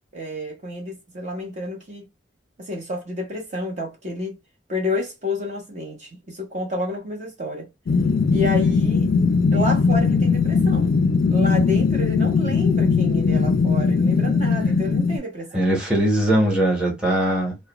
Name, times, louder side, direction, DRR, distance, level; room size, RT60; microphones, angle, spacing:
voice 1, 0.1-2.1 2.6-4.4 4.7-7.7 8.3-9.1 9.5-10.9 11.3-15.7, left 2 dB, 40° right, 0.8 m, -30 dB
sound 1, 7.9-15.2, left 4 dB, 55° left, 0.3 m, -19 dB
voice 2, 15.5-17.6, right 1 dB, 5° right, 1.0 m, -20 dB
2.4 x 2.1 x 2.9 m
head